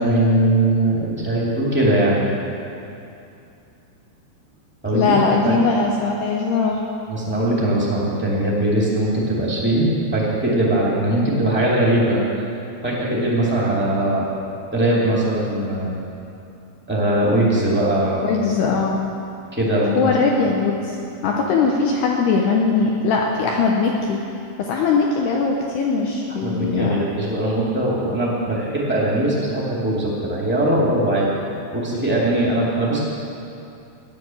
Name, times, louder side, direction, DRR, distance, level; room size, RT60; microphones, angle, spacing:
voice 1, 0.0-2.2 4.8-5.0 5.4-5.6 7.1-12.2 12.8-14.3 14.7-15.9 16.9-18.2 19.5-20.1 26.4-31.3 31.7-33.0, right 1 dB, 15° right, -6 dB, 0.3 m, -20 dB
voice 2, 4.9-6.8 18.2-19.0 20.0-21.0 21.2-24.2 24.6-27.0, left 4 dB, 75° left, -1 dB, 2.8 m, -20 dB
15.0 x 11.0 x 7.6 m, 2.7 s
omnidirectional pair, 5.3 m